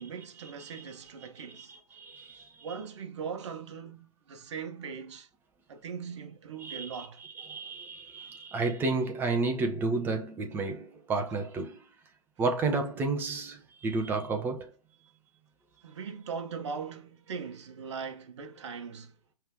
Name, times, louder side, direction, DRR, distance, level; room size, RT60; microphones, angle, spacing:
voice 1, 0.0-1.7 2.6-5.3 5.7-7.2 15.8-19.1, right 6 dB, 50° right, 1.2 m, -40 dB
voice 2, 1.2-2.7 6.6-11.8 12.4-14.7, right 3 dB, 10° right, 1.1 m, -32 dB
5.5 x 3.6 x 4.7 m
figure-of-eight pair, 135°, 19 cm